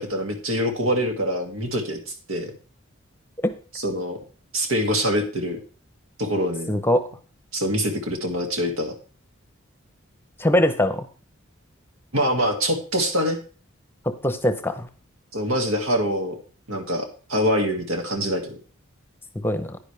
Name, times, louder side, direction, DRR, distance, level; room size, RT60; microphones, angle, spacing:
voice 1, 0.0-2.0 2.3-2.5 3.7-4.2 4.5-5.6 6.2-6.8 7.5-8.9 12.1-13.4 15.3-16.4 16.7-18.6, equal, 90° right, 4 dB, 2.1 m, -24 dB
voice 2, 6.7-7.0 10.4-11.1 14.0-14.9 19.4-19.8, left 1 dB, 10° left, 10 dB, 0.8 m, -22 dB
10.5 x 10.0 x 3.4 m, 0.38 s
head